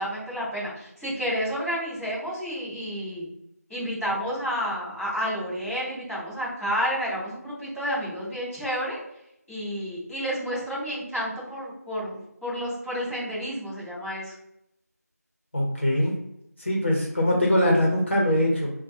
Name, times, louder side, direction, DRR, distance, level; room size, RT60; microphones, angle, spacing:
voice 1, 0.0-3.3 3.7-9.0 9.5-14.3, equal, 5° right, -20 dB, 1.1 m, -30 dB
voice 2, 15.5-16.2 16.6-18.7, left 1 dB, 45° left, -3 dB, 0.9 m, -22 dB
5.3 x 2.3 x 2.7 m, 0.79 s
figure-of-eight pair, 180°, 9 cm